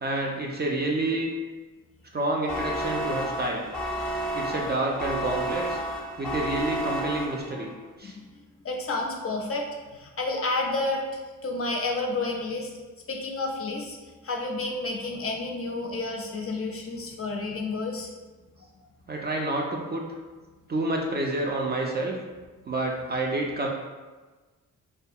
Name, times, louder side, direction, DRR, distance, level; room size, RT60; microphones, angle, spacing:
voice 1, 0.0-1.3 2.1-3.6 4.3-5.8 6.2-7.7 8.0-8.2 19.1-20.0 20.7-22.1 22.7-23.7, right 2 dB, 30° right, -1 dB, 0.4 m, -28 dB
sound 1, 2.5-7.7, equal, ahead, 0.7 m, -31 dB
voice 2, 4.1-4.4 8.0-8.1 8.6-9.7 9.9-11.0 11.4-12.7 13.1-14.0 14.2-18.1, left 3 dB, 40° left, 1 dB, 0.5 m, -30 dB
2.4 x 2.2 x 2.7 m, 1.3 s
cardioid pair, 60°, 36 cm